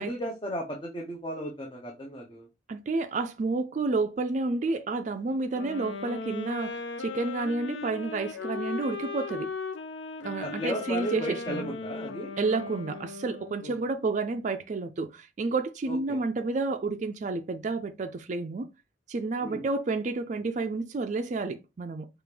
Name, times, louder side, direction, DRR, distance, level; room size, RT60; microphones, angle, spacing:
voice 1, 0.0-2.5 10.2-12.3 13.6-13.7 15.9-16.2 19.4-19.6, equal, 25° left, 0.7 m, -35 dB
voice 2, 2.7-9.5 10.2-11.8 12.4-18.7 19.1-22.1, right 3 dB, 40° right, 0.4 m, -30 dB
sound 1, 5.5-13.7, left 4 dB, 85° left, 0.6 m, -37 dB
4.8 x 2.4 x 3.3 m
head